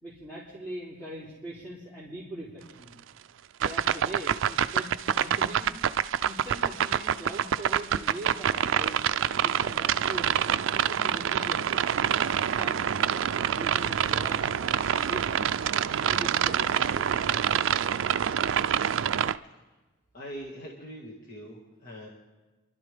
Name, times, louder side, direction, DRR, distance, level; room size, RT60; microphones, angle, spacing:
voice 1, 0.0-3.0 3.6-5.7 6.2-11.8 12.4-15.5 16.0-17.6, right 1 dB, 10° left, -8 dB, 3.2 m, -42 dB
sound 1, 3.6-19.4, right 9 dB, 75° right, 0.4 m, -26 dB
voice 2, 20.1-22.1, equal, 45° left, -3 dB, 1.8 m, -42 dB
29.0 x 12.0 x 3.4 m, 1.2 s
head